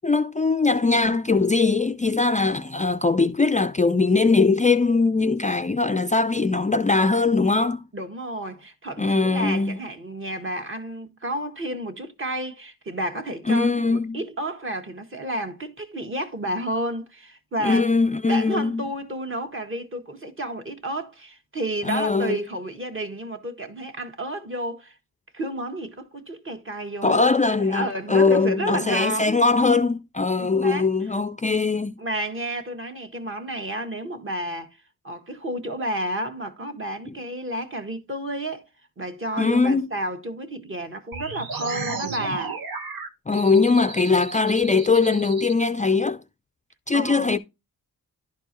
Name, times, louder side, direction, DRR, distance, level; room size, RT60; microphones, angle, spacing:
voice 1, 0.0-7.8 9.0-9.8 13.5-14.2 17.6-18.8 21.8-22.4 27.0-32.0 39.4-39.9 43.3-46.2 46.9-47.4, left 4 dB, 20° left, 0.4 m, -21 dB
voice 2, 7.9-17.9 18.3-24.9 25.3-27.2 27.6-29.5 30.4-30.9 32.0-34.7 35.0-38.6 39.0-42.6 46.9-47.4, right 1 dB, 35° right, 1.6 m, -31 dB
sound 1, 41.1-45.5, right 4 dB, 75° right, 1.3 m, -34 dB
11.5 x 4.5 x 2.9 m
cardioid pair, 70°, 36 cm